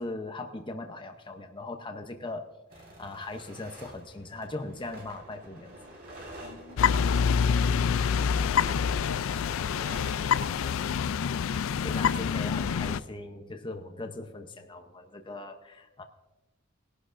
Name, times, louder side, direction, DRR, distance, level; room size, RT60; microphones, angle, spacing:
voice 1, 0.0-2.5 2.8-5.8 11.8-16.0, left 2 dB, 25° left, 5 dB, 0.7 m, -39 dB
sound 1, 2.7-10.9, right 1 dB, 45° right, 4.0 m, -48 dB
voice 2, 6.4-7.2, left 2 dB, 90° left, 4 dB, 1.4 m, -52 dB
sound 2, 6.8-13.0, left 7 dB, 65° left, 0.3 m, -26 dB
20.0 x 11.0 x 2.5 m, 1.1 s
head